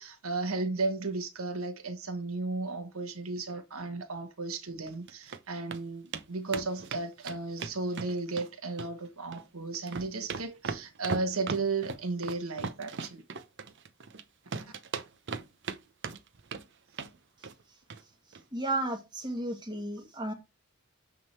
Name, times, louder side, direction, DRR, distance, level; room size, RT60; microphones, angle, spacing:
voice 1, 0.0-13.2, right 3 dB, 90° right, 1.4 m, -34 dB
sound 1, 4.9-5.4 5.7-5.8 6.1-6.3 6.5-8.5 8.8-9.5 9.7-14.2 14.5-15.8 16.0-16.6 16.9-17.2 17.4-17.6 17.9-18.0 18.3-18.4, right 5 dB, 60° right, 0.9 m, -38 dB
voice 2, 18.5-20.3, right 2 dB, 20° right, 1.8 m, -33 dB
9.2 x 3.8 x 4.4 m
head